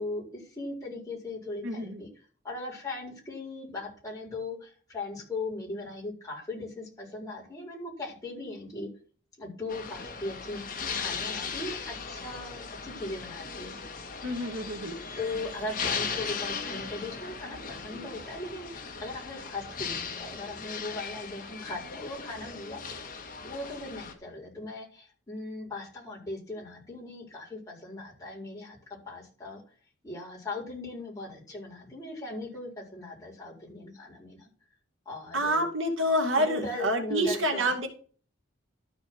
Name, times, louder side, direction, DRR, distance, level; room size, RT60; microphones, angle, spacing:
voice 1, 0.0-2.1 2.4-8.9 9.4-10.6 11.0-13.7 15.2-22.8 23.4-29.6 30.0-34.5 35.0-35.6 36.4-37.7, left 2 dB, 15° left, -3 dB, 4.5 m, -38 dB
voice 2, 1.6-2.0 14.2-15.0 35.3-37.9, equal, 85° right, 3 dB, 2.5 m, -28 dB
sound 1, 9.7-24.1, left 5 dB, 40° left, 1.8 m, -37 dB
13.0 x 4.6 x 6.2 m, 0.40 s
head